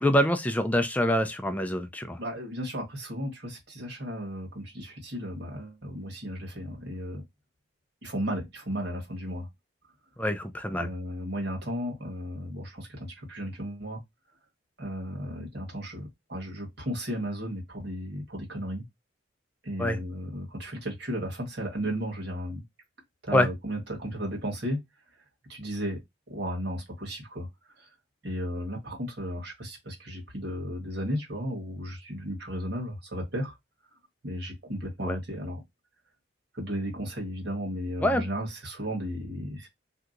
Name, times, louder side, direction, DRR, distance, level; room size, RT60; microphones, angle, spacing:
voice 1, 0.0-2.2 10.2-10.9 19.8-20.0 23.3-23.5 35.0-35.2 38.0-38.2, left 1 dB, 10° left, 0.3 m, -25 dB
voice 2, 2.2-7.2 8.0-9.5 10.6-14.0 14.8-18.8 19.6-22.6 23.2-24.8 25.5-26.0 26.3-27.5 27.8-27.9 28.2-33.5 34.2-35.6 36.5-39.7, equal, 55° right, 1.4 m, -34 dB
2.8 x 2.3 x 3.7 m
head